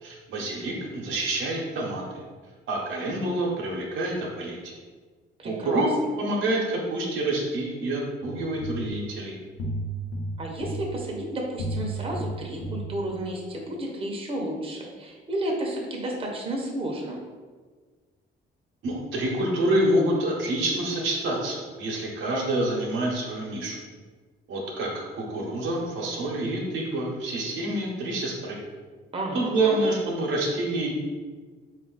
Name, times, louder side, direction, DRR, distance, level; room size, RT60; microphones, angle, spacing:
voice 1, 0.0-2.2 2.7-4.8 5.4-5.9 6.2-9.4 18.8-23.8 24.5-28.6 29.3-30.9, right 1 dB, 75° right, -2 dB, 0.9 m, -27 dB
voice 2, 5.4-5.8 10.4-17.2 29.1-29.8, right 1 dB, 30° right, -1 dB, 0.8 m, -32 dB
sound 1, 8.2-13.5, right 2 dB, 70° left, 0.7 m, -34 dB
3.9 x 2.5 x 3.9 m, 1.4 s
cardioid pair, 90°, 20 cm